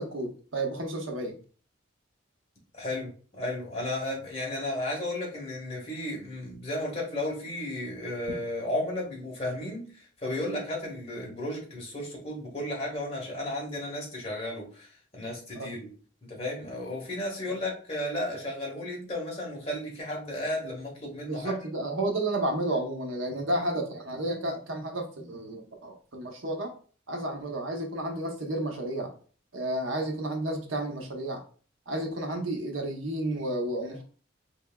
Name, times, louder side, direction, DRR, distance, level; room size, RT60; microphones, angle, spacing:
voice 1, 0.0-1.4 8.3-8.4 15.5-15.7 21.3-26.7 27.1-29.1 29.5-31.4 31.9-34.0, right 1 dB, 85° right, 3 dB, 0.9 m, -31 dB
voice 2, 2.7-15.9 16.3-21.5, left 1 dB, 30° left, -2 dB, 1.5 m, -34 dB
4.4 x 3.4 x 2.3 m, 0.40 s
head